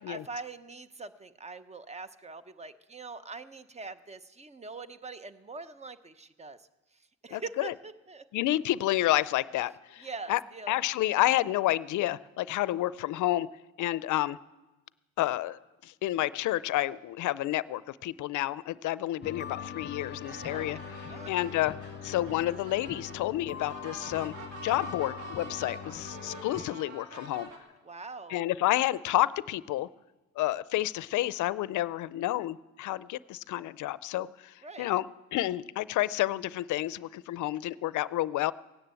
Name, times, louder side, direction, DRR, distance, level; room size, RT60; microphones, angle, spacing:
voice 1, 0.0-8.2 10.0-10.8 20.4-20.8 21.1-21.3 27.8-28.4 34.6-34.9, right 4 dB, 20° right, 12 dB, 0.8 m, -43 dB
voice 2, 7.3-7.7 8.3-10.4 10.7-13.5 13.8-14.4 15.2-20.8 21.3-21.7 22.0-24.3 24.6-27.5 28.3-29.9 30.4-35.1 35.3-38.5, left 15 dB, 75° left, 19 dB, 0.5 m, -30 dB
sound 1, 19.2-26.7, left 7 dB, 35° left, 0.7 m, -42 dB
sound 2, 20.2-27.6, right 2 dB, 90° right, 2.7 m, -46 dB
17.0 x 10.0 x 8.3 m, 1.1 s
cardioid pair, 90°, 30 cm